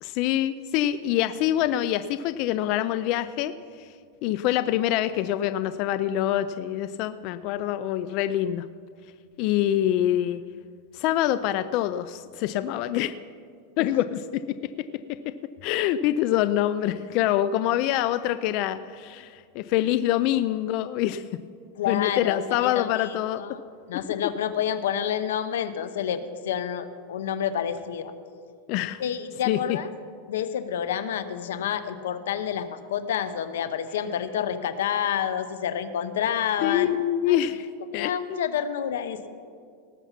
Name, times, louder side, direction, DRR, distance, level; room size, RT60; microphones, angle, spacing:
voice 1, 0.0-3.5 3.8-3.9 4.2-8.7 9.4-10.4 10.9-13.1 13.8-14.4 15.6-21.2 21.9-23.4 28.7-29.0 29.5-29.8 36.6-37.7 37.9-38.1, left 12 dB, 45° left, 13 dB, 0.4 m, -25 dB
voice 2, 21.8-23.6 23.9-28.1 29.0-29.9 30.3-36.9 37.3-37.5 37.8-39.3, left 9 dB, 90° left, 12 dB, 0.8 m, -29 dB
18.5 x 7.1 x 5.8 m, 2.2 s
supercardioid pair, 150°, 0 cm